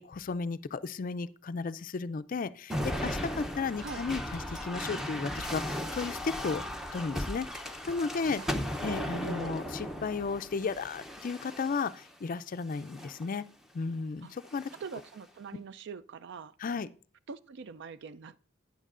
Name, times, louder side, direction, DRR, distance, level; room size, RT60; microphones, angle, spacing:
voice 1, 0.0-6.6 6.9-7.5 7.9-8.4 8.8-13.4 13.7-14.7 16.6-16.9, left 4 dB, 45° left, 0.4 m, -34 dB
sound 1, 2.7-12.1 12.8-13.3 14.4-15.1, equal, ahead, 0.7 m, -37 dB
voice 2, 8.9-9.7 14.2-14.3 14.8-16.5 17.3-18.5, right 5 dB, 60° right, 0.4 m, -43 dB
12.0 x 9.2 x 2.5 m
head